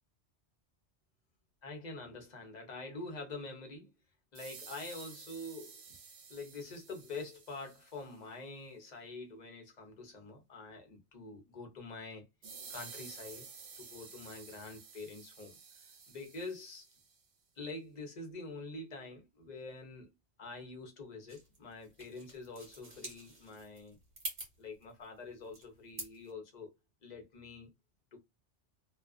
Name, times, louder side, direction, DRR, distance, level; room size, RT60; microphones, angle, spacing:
voice 1, 1.6-3.9 4.3-5.8 6.3-12.3 12.7-13.5 13.8-16.9 17.6-20.1 20.4-24.0 24.6-26.7 27.0-27.7 28.1-28.2, left 3 dB, 45° left, 0.8 m, -46 dB
sound 1, 4.4-8.2 12.4-17.2, right 5 dB, 60° right, 0.3 m, -52 dB
sound 2, 21.3-26.3, right 2 dB, 40° right, 1.2 m, -47 dB
2.3 x 2.3 x 2.2 m
omnidirectional pair, 1.2 m